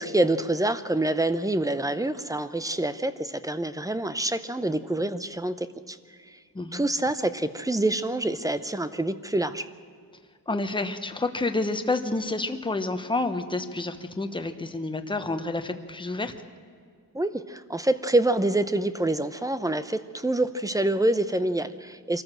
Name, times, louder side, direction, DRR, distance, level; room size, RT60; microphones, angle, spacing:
voice 1, 0.0-6.0 6.3-6.4 6.7-9.7 17.1-22.2, right 1 dB, 10° right, 12 dB, 0.7 m, -26 dB
voice 2, 10.5-16.3, left 2 dB, 15° left, 8 dB, 1.1 m, -29 dB
24.5 x 14.0 x 7.6 m, 2.2 s
wide cardioid pair, 150°, 36 cm